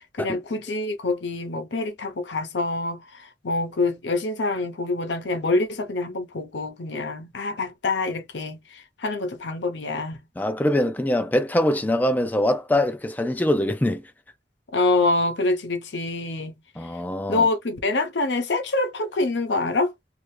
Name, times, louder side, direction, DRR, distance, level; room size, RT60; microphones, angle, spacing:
voice 1, 0.2-10.2 14.7-16.5 17.3-19.9, left 2 dB, 90° left, 0.8 m, -26 dB
voice 2, 10.4-14.0 16.8-17.5, left 1 dB, 10° left, 0.3 m, -23 dB
2.8 x 2.5 x 3.1 m
head